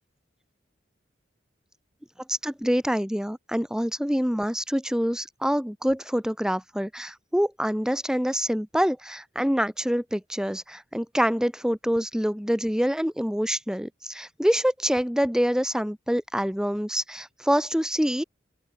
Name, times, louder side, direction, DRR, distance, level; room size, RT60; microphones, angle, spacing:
voice 1, 2.3-18.2, equal, 5° right, 3.3 m, -26 dB
open air
head